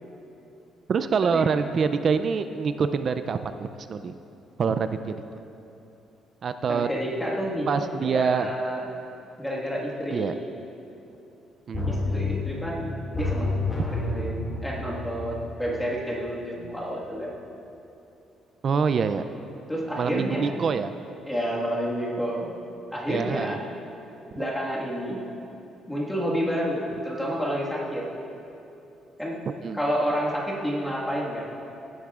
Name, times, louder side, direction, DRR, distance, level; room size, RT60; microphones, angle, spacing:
voice 1, 0.9-4.2 4.6-5.2 6.4-6.9 7.7-8.5 10.1-10.3 11.7-11.9 18.6-19.2 20.0-20.9 23.1-23.6 24.4-24.5 29.6-29.8, right 5 dB, 40° right, 10 dB, 0.3 m, -25 dB
voice 2, 6.7-8.9 9.4-10.3 11.9-13.6 13.9-17.3 19.7-20.6 21.3-22.5 22.9-23.6 24.3-25.2 25.9-28.0 29.2-29.4 29.7-31.4, equal, 5° left, -4 dB, 1.6 m, -29 dB
sound 1, 11.7-16.4 16.7-16.8, left 2 dB, 20° left, 2.0 m, -30 dB
17.0 x 11.0 x 2.4 m, 2.9 s
cardioid pair, 145°, 0 cm